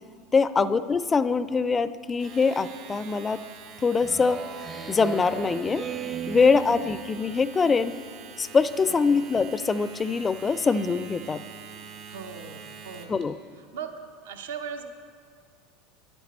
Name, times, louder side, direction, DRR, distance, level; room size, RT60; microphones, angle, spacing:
voice 1, 0.3-3.4 3.8-4.4 4.9-5.8 6.3-7.9 8.4-11.4 13.1-13.4, left 4 dB, 25° left, 15 dB, 0.3 m, -23 dB
Domestic sounds home sounds, 2.1-13.2, right 5 dB, 60° right, 1.5 m, -45 dB
Speech synthesizer, 4.0-7.5, right 6 dB, 35° right, 0.6 m, -36 dB
voice 2, 6.3-6.8 8.9-9.2 12.1-13.2 13.7-13.9 14.2-14.8, right 6 dB, 75° right, 6 dB, 0.7 m, -39 dB
10.5 x 8.0 x 4.2 m, 2.1 s
hypercardioid pair, 85°, 0 cm